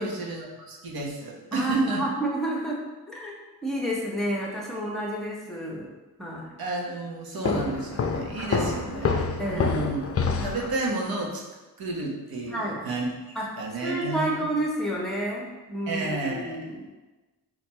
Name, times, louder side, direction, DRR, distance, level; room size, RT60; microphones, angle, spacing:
voice 1, 0.0-2.0 6.6-9.1 9.5-10.0 10.4-11.4 11.8-14.4 15.9-16.7, right 2 dB, 60° right, -2 dB, 1.2 m, -31 dB
voice 2, 1.5-2.8 3.1-5.9 6.2-6.5 7.4-7.6 8.5-8.9 9.4-9.7 12.5-12.8 13.3-13.5 13.8-16.9, right 1 dB, ahead, -3 dB, 1.2 m, -30 dB
Walk footsteps, 7.4-10.8, left 4 dB, 35° left, 0.5 m, -27 dB
4.2 x 2.9 x 4.3 m, 1.2 s
cardioid pair, 70°, 40 cm